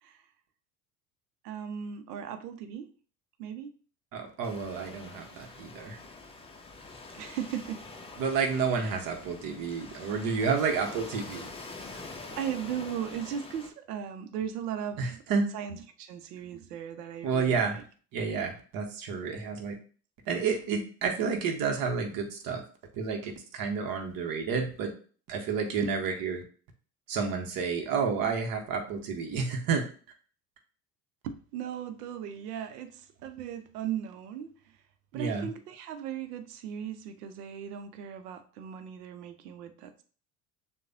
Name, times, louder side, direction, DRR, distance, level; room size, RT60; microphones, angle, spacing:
voice 1, 1.4-2.9 3.4-3.8 5.1-5.5 7.1-7.9 8.7-9.0 12.3-17.8 25.8-25.9 31.2-34.8 35.1-40.0, right 9 dB, 70° right, 10 dB, 0.7 m, -38 dB
voice 2, 4.1-6.0 8.2-11.5 15.0-15.5 17.2-17.8 18.1-19.7 20.3-22.6 22.9-24.9 25.3-26.4 27.1-29.8 35.1-35.5, right 5 dB, 45° right, 4 dB, 1.1 m, -30 dB
Waves surf, 4.4-13.7, left 3 dB, 10° left, 0.6 m, -45 dB
6.5 x 2.3 x 2.7 m, 0.40 s
figure-of-eight pair, 70°, 49 cm